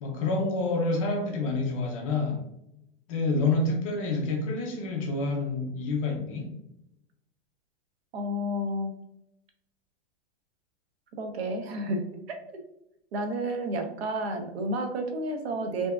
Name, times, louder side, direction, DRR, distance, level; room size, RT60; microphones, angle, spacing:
voice 1, 0.0-2.4 3.1-6.5, left 3 dB, 30° left, 1 dB, 0.5 m, -28 dB
voice 2, 8.1-8.9 11.2-12.1 12.5-12.6 13.1-15.9, right 1 dB, 65° right, 5 dB, 0.7 m, -31 dB
3.4 x 2.8 x 2.3 m, 0.82 s
supercardioid pair, 160°, 35 cm